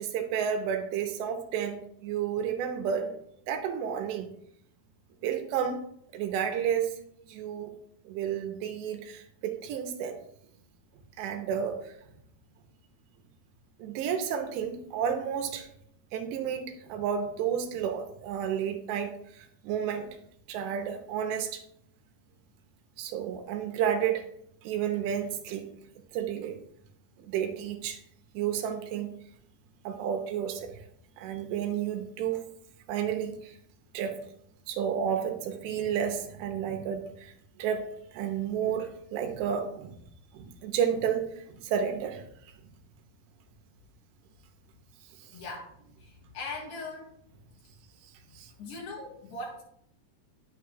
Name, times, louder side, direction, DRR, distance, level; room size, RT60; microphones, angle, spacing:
voice 1, 0.0-3.1 3.5-4.3 5.2-5.8 6.1-6.9 7.3-7.7 8.1-10.2 11.2-11.9 13.8-15.7 16.1-20.1 20.5-21.6 23.0-24.3 24.6-25.7 26.1-26.6 27.2-28.0 28.3-29.1 29.8-30.8 31.2-32.4 32.9-33.6 33.9-34.2 34.7-37.3 37.6-40.0 40.3-42.2 48.4-48.5, right 8 dB, 90° right, 5 dB, 3.1 m, -31 dB
voice 2, 45.3-45.7 46.0-47.1 48.2-49.6, left 3 dB, 80° left, -6 dB, 4.9 m, -40 dB
10.5 x 9.1 x 2.4 m, 0.72 s
omnidirectional pair, 5.0 m